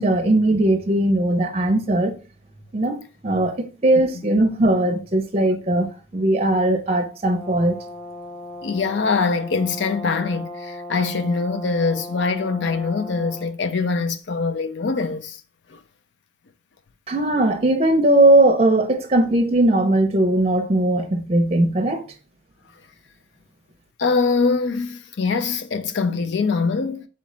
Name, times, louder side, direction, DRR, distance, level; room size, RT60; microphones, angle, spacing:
voice 1, 0.0-2.1 2.7-7.8 17.1-22.0, right 1 dB, 30° right, 0.6 m, -19 dB
Brass instrument, 7.3-13.5, left 1 dB, 10° left, 1.0 m, -37 dB
voice 2, 8.6-15.4 15.7-15.8 24.0-27.1, left 4 dB, 60° left, 0.5 m, -23 dB
4.2 x 3.1 x 3.8 m
head